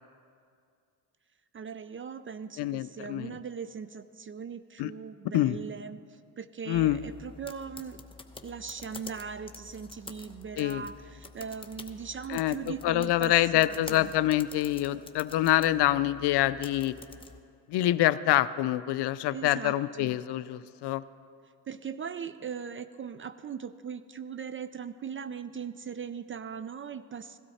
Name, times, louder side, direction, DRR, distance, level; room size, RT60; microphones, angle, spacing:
voice 1, 1.5-8.0 8.4-14.1 19.2-20.2 21.7-27.4, right 6 dB, 30° right, 13 dB, 0.4 m, -40 dB
voice 2, 2.6-3.3 4.8-4.9 5.3-5.6 6.7-7.0 10.6-10.8 12.3-16.9 17.7-21.0, left 14 dB, 60° left, 15 dB, 0.5 m, -26 dB
sound 1, 6.7-17.4, left 3 dB, 10° left, 0.8 m, -48 dB
16.5 x 12.5 x 4.2 m, 2.3 s
supercardioid pair, 70°, 47 cm